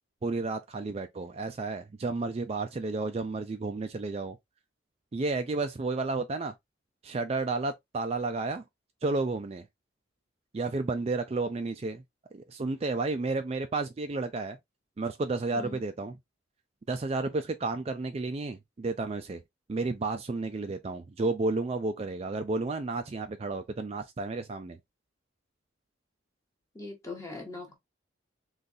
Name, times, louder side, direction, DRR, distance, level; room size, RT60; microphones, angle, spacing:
voice 1, 0.2-4.4 5.1-6.5 7.0-8.6 9.0-9.6 10.5-12.0 12.3-14.6 15.0-16.2 16.9-19.4 19.7-24.8, right 3 dB, 30° right, 0.4 m, -32 dB
voice 2, 26.7-27.7, left 3 dB, 15° left, 0.9 m, -41 dB
3.9 x 3.1 x 2.6 m
head